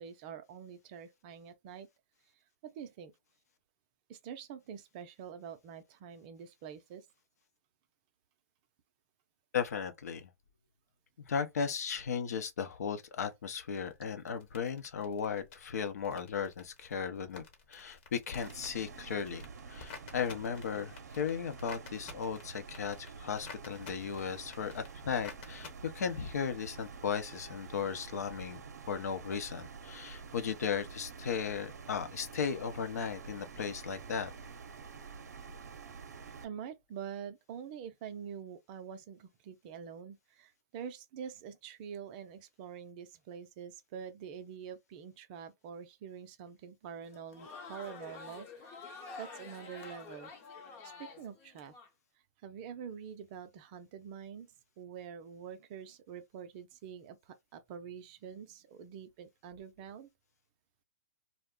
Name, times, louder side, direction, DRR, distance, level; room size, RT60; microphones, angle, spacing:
voice 1, 0.0-1.9 2.6-3.1 4.1-7.1 18.8-18.9 36.4-48.8 49.2-50.3 50.8-51.8 52.4-54.5 54.8-60.1, right 8 dB, 35° right, 0.5 m, -46 dB
voice 2, 9.5-10.3 11.2-17.4 17.7-28.6 28.9-34.3, left 7 dB, 75° left, 0.7 m, -36 dB
sound 1, 13.8-25.7, left 5 dB, 40° left, 1.0 m, -53 dB
sound 2, 18.4-36.4, right 5 dB, 80° right, 0.6 m, -48 dB
Crowd, 47.0-51.9, left 4 dB, 25° left, 0.6 m, -48 dB
2.4 x 2.1 x 3.6 m
hypercardioid pair, 145°, 9 cm